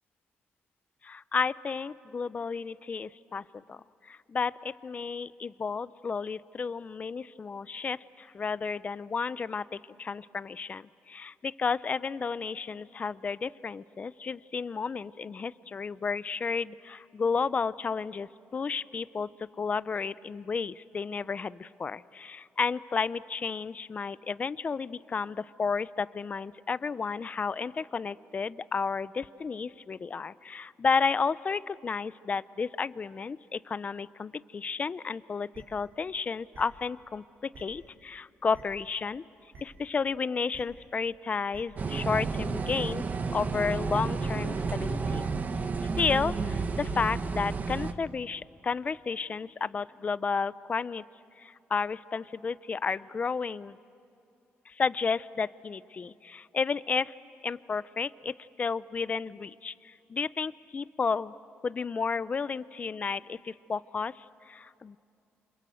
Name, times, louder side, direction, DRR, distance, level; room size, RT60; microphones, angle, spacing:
voice 1, 1.0-19.3 19.6-39.2 39.6-43.0 43.3-45.3 46.0-51.0 51.4-53.8 54.7-57.1 57.4-61.3 61.6-65.0, left 5 dB, 35° left, 17 dB, 0.6 m, -32 dB
sound 1, 35.5-35.6 36.5-36.6 37.5-37.6 38.5-38.6 39.5-39.6 40.5-40.6 41.5-41.6 42.5-42.6 43.5-43.6 44.5-44.6 45.2-45.3, right 3 dB, 55° right, 4.1 m, -48 dB
sound 2, 41.8-47.9, right 4 dB, 40° right, 1.2 m, -31 dB
28.5 x 26.0 x 7.9 m, 2.7 s
cardioid pair, 110°, 4 cm